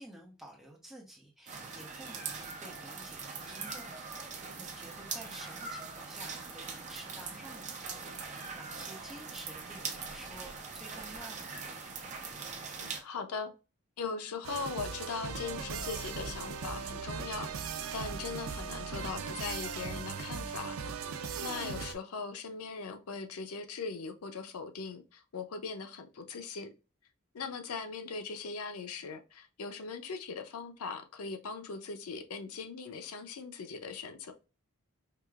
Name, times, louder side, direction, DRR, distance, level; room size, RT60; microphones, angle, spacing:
voice 1, 0.0-3.9 4.2-11.6, right 1 dB, ahead, 0.8 m, -51 dB
sound 1, 1.5-13.0, right 4 dB, 35° right, 0.6 m, -42 dB
voice 2, 12.8-13.5 14.0-17.5 17.9-20.7 21.4-26.7 27.3-34.3, left 5 dB, 90° left, 0.5 m, -40 dB
sound 2, 14.4-21.9, right 5 dB, 80° right, 0.5 m, -38 dB
4.7 x 2.7 x 2.4 m
head